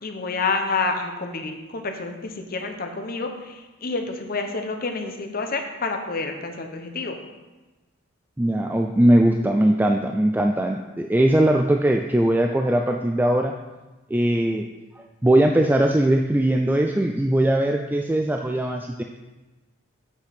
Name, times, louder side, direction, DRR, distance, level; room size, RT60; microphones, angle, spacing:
voice 1, 0.0-7.2, left 3 dB, 45° left, 5 dB, 0.8 m, -28 dB
voice 2, 8.4-13.5 14.1-14.7 15.0-19.0, right 1 dB, 10° right, 3 dB, 0.3 m, -20 dB
8.2 x 5.1 x 5.8 m, 1.2 s
head